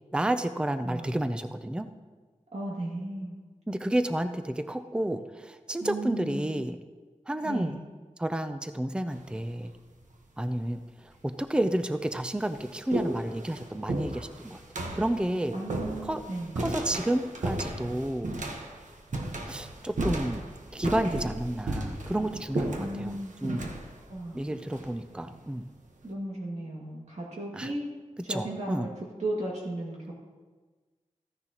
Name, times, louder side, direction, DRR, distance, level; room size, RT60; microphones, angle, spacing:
voice 1, 0.1-1.9 3.7-6.8 7.3-7.8 8.2-9.7 10.4-14.6 14.9-15.6 16.0-16.2 16.6-18.3 19.5-23.7 24.3-25.7 27.5-27.7 28.3-28.9, right 1 dB, 10° right, 9 dB, 0.5 m, -31 dB
voice 2, 0.8-1.2 2.5-3.4 5.8-6.5 7.4-7.8 15.5-16.6 22.8-23.3 24.1-24.5 26.0-27.8 28.2-30.1, right 1 dB, 65° right, -4 dB, 2.2 m, -35 dB
sound 1, 9.1-9.6 10.5-10.6 11.4-11.5 11.9-25.5, right 2 dB, 80° right, 1.2 m, -35 dB
14.5 x 10.0 x 3.0 m, 1.4 s
wide cardioid pair, 70°, 13 cm